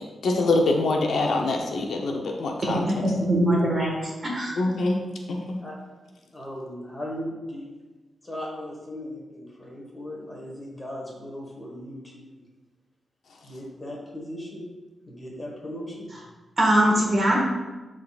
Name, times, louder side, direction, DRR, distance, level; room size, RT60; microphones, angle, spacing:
voice 1, 0.0-2.8 4.6-5.0 5.3-5.6, left 2 dB, 70° left, 1 dB, 0.8 m, -24 dB
voice 2, 2.7-4.5 16.6-17.4, right 1 dB, 30° right, -3 dB, 1.5 m, -22 dB
voice 3, 5.3-5.8 6.3-7.7 8.2-12.4 13.4-14.7 15.1-16.1, left 1 dB, 15° left, -2 dB, 1.4 m, -37 dB
11.0 x 3.7 x 2.4 m, 1.2 s
wide cardioid pair, 170°, 0 cm